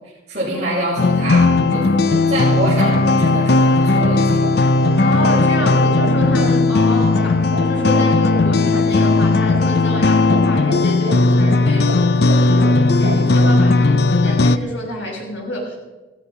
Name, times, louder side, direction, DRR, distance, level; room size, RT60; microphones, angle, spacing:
voice 1, 0.3-1.9 2.3-4.5, right 1 dB, 35° right, -9 dB, 6.4 m, -25 dB
sound 1, 1.0-14.6, left 3 dB, 60° left, 0.6 m, -16 dB
sound 2, 1.5-13.7, right 2 dB, 55° right, 2.7 m, -32 dB
voice 2, 4.9-15.8, equal, 90° left, -1 dB, 6.2 m, -29 dB
16.0 x 15.0 x 5.7 m, 1.2 s
head